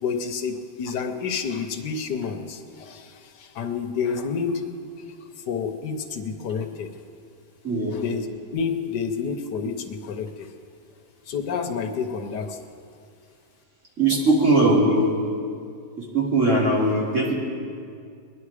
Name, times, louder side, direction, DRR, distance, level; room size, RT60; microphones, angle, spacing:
voice 1, 0.0-4.7 5.5-6.9 7.9-8.3 8.5-10.5 11.3-12.6, left 6 dB, 75° left, 6 dB, 1.5 m, -29 dB
voice 2, 7.6-8.0 14.0-15.1 16.1-17.3, right 2 dB, 45° right, -5 dB, 3.1 m, -20 dB
23.0 x 10.5 x 4.9 m, 2.3 s
omnidirectional pair, 1.8 m